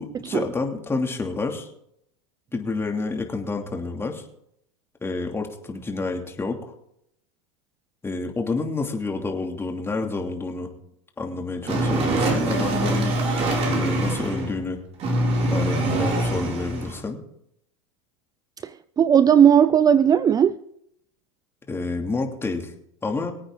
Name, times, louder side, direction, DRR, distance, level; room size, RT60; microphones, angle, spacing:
voice 1, 0.0-1.7 2.5-4.2 5.0-6.7 8.0-10.7 11.2-13.2 13.7-14.8 15.5-17.2 21.7-22.7 23.0-23.3, left 3 dB, 15° left, 2.9 m, -29 dB
sound 1, 11.7-14.6 15.0-17.0, right 1 dB, 40° right, 4.8 m, -24 dB
voice 2, 18.6-20.6, right 8 dB, 25° right, 0.5 m, -17 dB
24.0 x 8.8 x 4.0 m
hypercardioid pair, 95°, 16 cm